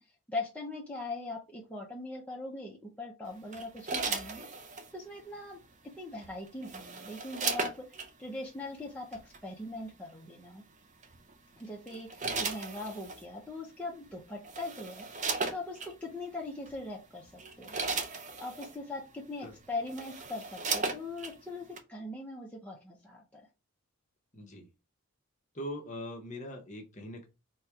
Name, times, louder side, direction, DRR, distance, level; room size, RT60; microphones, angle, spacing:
voice 1, 0.3-4.5 4.9-5.6 6.0-7.7 8.0-10.6 11.6-15.1 15.5-17.8 18.4-23.4, left 2 dB, 5° left, -3 dB, 0.7 m, -41 dB
sound 1, 3.5-4.9 6.2-8.1 9.1-9.4 11.0-11.3 11.9-13.2 14.0-14.1 14.4-15.9 16.7-16.8 17.3-18.8 19.4-19.5 19.8-21.4 21.8-21.9, right 4 dB, 35° right, 0.6 m, -36 dB
voice 2, 24.3-24.7 25.5-27.3, left 1 dB, 30° left, 1 dB, 0.9 m, -42 dB
4.2 x 2.3 x 4.7 m, 0.28 s
head